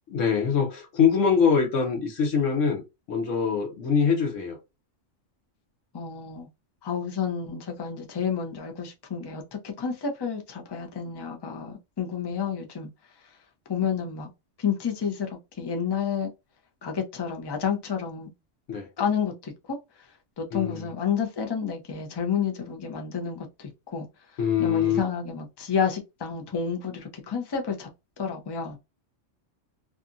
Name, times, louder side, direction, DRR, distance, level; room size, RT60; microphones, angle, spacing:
voice 1, 0.1-2.8 3.1-4.6 18.7-18.9 20.5-20.9 24.4-25.0, left 6 dB, 75° left, 1.1 m, -23 dB
voice 2, 5.9-6.5 6.8-12.9 13.7-14.3 14.6-15.3 15.6-16.3 16.8-18.3 19.0-19.8 20.4-24.1 24.6-27.9 28.2-28.8, left 7 dB, 30° left, 0.4 m, -30 dB
2.7 x 2.4 x 2.5 m
omnidirectional pair, 1.3 m